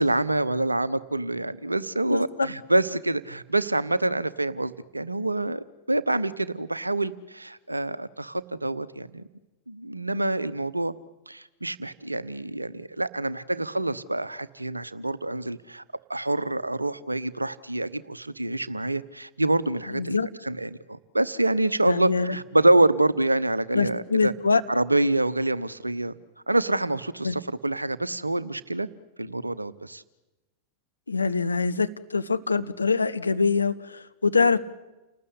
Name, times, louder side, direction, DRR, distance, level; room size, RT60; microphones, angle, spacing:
voice 1, 0.0-9.2 9.7-10.9 11.3-15.8 16.1-20.2 20.4-24.3 24.7-26.1 26.5-28.9 29.2-30.0, right 2 dB, 85° right, 17 dB, 0.9 m, -26 dB
voice 2, 2.1-2.5 19.9-20.3 21.8-22.4 23.7-24.6 27.2-27.4 31.1-34.6, left 4 dB, 80° left, 11 dB, 1.2 m, -24 dB
29.0 x 19.0 x 8.7 m, 1.1 s
figure-of-eight pair, 90°, 0 cm